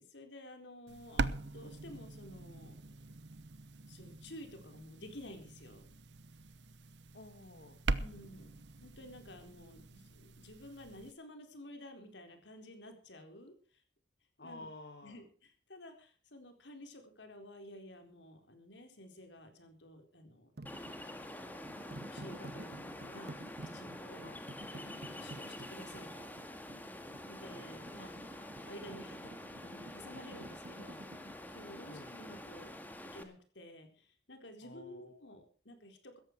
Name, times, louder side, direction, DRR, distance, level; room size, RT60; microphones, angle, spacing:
voice 1, 0.0-2.8 3.9-5.9 8.0-13.8 14.4-14.7 15.0-20.5 21.1-21.2 21.8-24.2 24.7-26.3 27.2-28.1 28.7-29.3 29.6-31.1 31.5-32.7 33.1-36.2, left 1 dB, 80° left, 6 dB, 4.2 m, -52 dB
sound 1, 0.9-11.1, right 3 dB, 75° right, 0.9 m, -42 dB
voice 2, 7.1-7.8 14.4-15.2 24.2-24.4 27.3-27.9 31.9-32.1 34.6-35.3, left 2 dB, 65° left, 3 dB, 2.2 m, -52 dB
sound 2, 20.6-31.4, right 1 dB, 60° right, 1.3 m, -51 dB
Ocean, 20.7-33.2, left 1 dB, 10° left, 2.0 m, -47 dB
16.5 x 14.0 x 4.7 m, 0.41 s
head